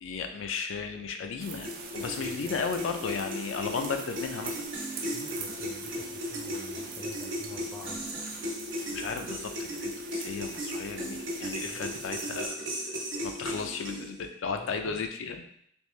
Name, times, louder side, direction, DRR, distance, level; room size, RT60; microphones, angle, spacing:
voice 1, 0.0-4.6 8.9-12.6 13.2-15.5, left 5 dB, 85° left, 5 dB, 0.4 m, -34 dB
sound 1, 1.4-12.5, right 5 dB, 50° right, 0.4 m, -44 dB
sound 2, 1.6-14.3, equal, 80° right, 1.0 m, -36 dB
voice 2, 2.0-2.6 5.1-8.0 11.6-11.9 14.5-15.0, left 1 dB, 20° left, 1 dB, 0.4 m, -48 dB
3.5 x 2.5 x 3.1 m, 0.68 s
head